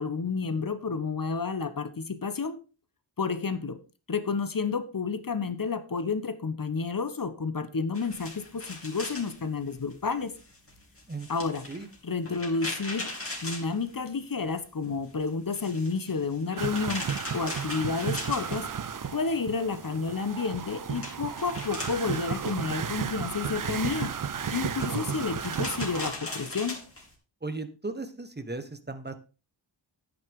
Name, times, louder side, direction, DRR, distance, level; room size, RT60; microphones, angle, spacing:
voice 1, 0.0-2.6 3.2-3.8 4.1-10.3 11.3-11.6 12.0-13.1 13.4-18.7 19.1-24.1 24.5-26.8, left 4 dB, 45° left, 11 dB, 1.1 m, -30 dB
sound 1, 7.9-14.5 14.8-19.2 19.5-27.1, left 2 dB, 30° left, 2.7 m, -41 dB
sound 2, 16.6-26.1, right 7 dB, 45° right, 0.6 m, -33 dB
voice 2, 27.4-29.1, right 3 dB, 20° right, 10 dB, 1.2 m, -36 dB
10.0 x 9.0 x 3.7 m, 0.32 s
wide cardioid pair, 80°, 47 cm